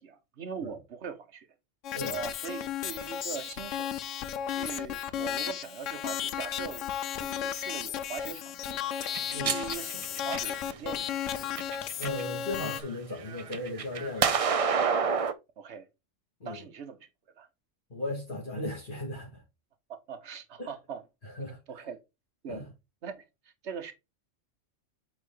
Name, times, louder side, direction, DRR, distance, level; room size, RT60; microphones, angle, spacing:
voice 1, 0.0-1.5 2.1-3.9 4.5-6.9 7.2-8.9 9.3-11.1 15.6-15.9 16.4-17.1 17.4-17.5 19.9-21.0 21.7-22.0 22.4-22.7 23.0-23.9, right 7 dB, 65° right, 1.3 m, -41 dB
sound 1, 1.8-12.8, left 9 dB, 80° left, 1.0 m, -34 dB
sound 2, 9.0-10.8 11.4-12.2 12.6-15.3, right 6 dB, 45° right, 0.4 m, -29 dB
voice 2, 12.0-14.4 16.4-16.6 17.9-19.4 20.6-20.7 21.4-21.6 22.5-22.7, left 2 dB, 45° left, 2.2 m, -36 dB
8.1 x 3.7 x 3.8 m
omnidirectional pair, 1.3 m